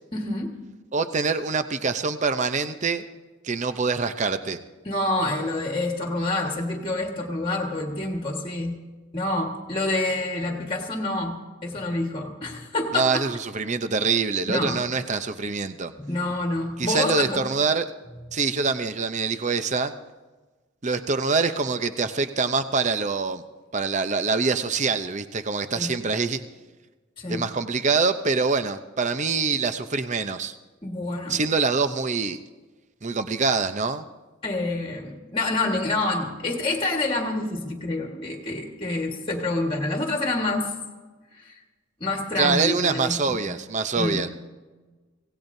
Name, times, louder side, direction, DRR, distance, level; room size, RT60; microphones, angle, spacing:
voice 1, 0.1-0.5 4.8-8.8 9.1-13.1 14.5-14.8 16.0-17.4 25.7-25.9 27.2-27.4 30.8-31.4 34.4-40.7 41.4-41.5 42.0-43.5 44.0-44.3, left 2 dB, 25° left, 1 dB, 1.6 m, -27 dB
voice 2, 0.9-3.0 3.4-4.6 12.9-15.9 16.8-17.9 18.3-19.9 20.8-23.4 23.7-26.4 27.3-30.5 31.3-32.4 33.0-34.1 42.4-44.3, right 4 dB, 35° right, 10 dB, 0.6 m, -25 dB
25.5 x 17.5 x 2.7 m, 1.3 s
head